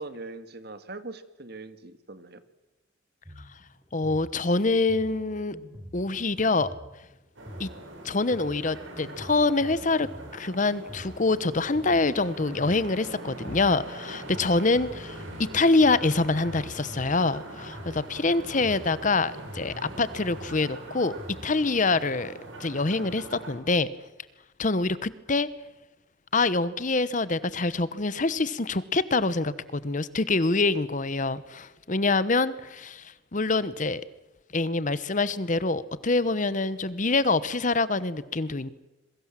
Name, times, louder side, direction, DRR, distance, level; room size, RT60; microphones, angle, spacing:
voice 1, 0.0-2.4, right 3 dB, 55° right, 11 dB, 1.9 m, -41 dB
Drum kit, 3.2-21.4, equal, 15° right, 3.4 m, -46 dB
voice 2, 3.9-5.6 5.9-6.7 7.6-7.7 8.0-10.1 10.3-15.2 15.5-21.2 21.4-22.3 22.6-23.9 24.6-25.5 26.3-34.0 34.5-38.7, left 3 dB, 40° left, 16 dB, 1.0 m, -25 dB
sound 1, 7.4-23.6, right 1 dB, 85° right, 7.7 m, -43 dB
27.0 x 22.5 x 7.5 m, 0.98 s
head